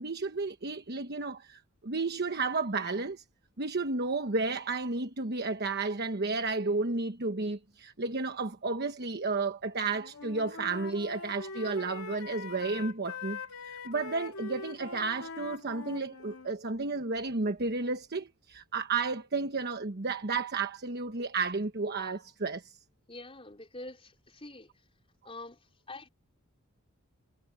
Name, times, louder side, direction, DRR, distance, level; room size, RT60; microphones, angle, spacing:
voice 1, 0.0-3.2 3.6-13.4 13.6-22.6, right 3 dB, 50° right, 1.2 m, -32 dB
Wind instrument woodwind instrument, 9.8-16.5, left 4 dB, 85° left, 2.2 m, -43 dB
voice 2, 23.1-24.7 25.2-26.1, left 2 dB, 25° left, 4.6 m, -46 dB
head